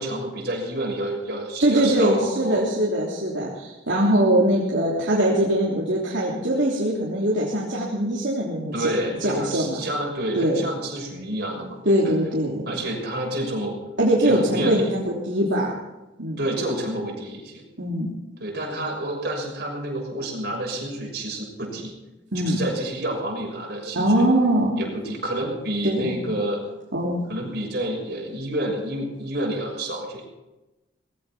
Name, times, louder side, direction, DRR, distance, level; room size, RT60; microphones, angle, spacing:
voice 1, 0.0-2.6 8.7-12.1 12.7-13.8 14.2-14.9 16.4-17.6 18.4-21.9 22.5-24.3 24.8-26.6 27.3-30.2, right 1 dB, 55° right, -1 dB, 6.4 m, -29 dB
voice 2, 1.6-8.9 9.2-9.9 10.3-10.6 11.8-12.7 14.0-15.7 16.2-16.4 17.8-18.1 22.3-22.6 23.9-24.8 25.8-26.2 26.9-27.2, right 1 dB, 70° right, -6 dB, 3.2 m, -22 dB
20.0 x 16.5 x 4.4 m, 1.0 s
head